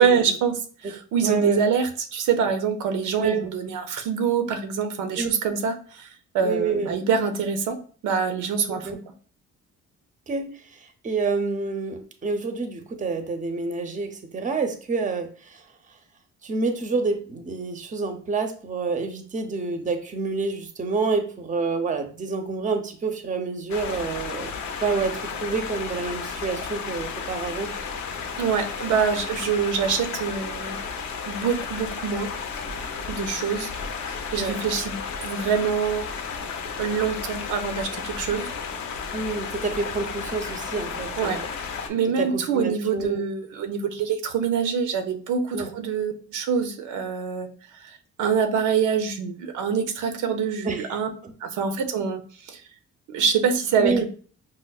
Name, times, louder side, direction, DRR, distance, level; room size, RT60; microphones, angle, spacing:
voice 1, 0.0-6.1 6.3-8.9 28.4-30.8 31.2-32.3 33.1-33.7 34.0-36.0 36.8-38.5 41.2-41.4 41.9-47.5 47.7-51.1 51.4-52.6 53.1-54.0, right 6 dB, 80° right, 6 dB, 0.6 m, -25 dB
voice 2, 1.2-1.6 3.2-3.4 5.2-5.3 6.4-6.9 8.7-9.0 10.3-15.6 16.4-24.5 24.8-27.7 34.4-34.6 39.1-41.4 42.2-43.2 45.5-45.7 50.6-50.9 51.2-51.3 53.8-54.0, right 4 dB, 25° right, 6 dB, 0.6 m, -28 dB
sound 1, 23.7-41.9, left 5 dB, 70° left, 0.6 m, -33 dB
5.3 x 2.0 x 2.3 m, 0.42 s
cardioid pair, 90°, 30 cm